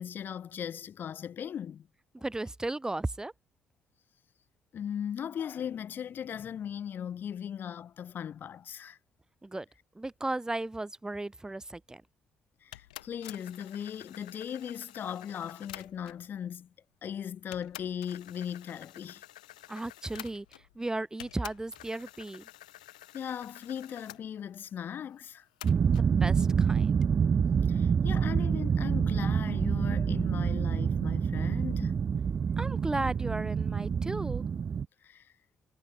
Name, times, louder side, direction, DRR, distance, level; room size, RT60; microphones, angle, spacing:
voice 1, 0.0-1.9 2.2-2.3 4.7-9.0 12.6-16.7 17.0-19.2 23.1-25.5 27.7-32.1 35.0-35.3, left 9 dB, 55° left, 7.0 m, -38 dB
voice 2, 2.1-3.3 9.4-9.7 10.0-12.0 19.7-22.4 26.0-26.9 32.6-34.4, right 2 dB, 15° right, 2.4 m, -35 dB
sound 1, 12.7-16.3 17.0-17.1 17.5-20.8 21.2-24.2 25.6-26.1, left 15 dB, 85° left, 2.8 m, -49 dB
sound 2, 25.6-34.8, right 6 dB, 45° right, 1.1 m, -27 dB
hypercardioid pair, 50°, 4 cm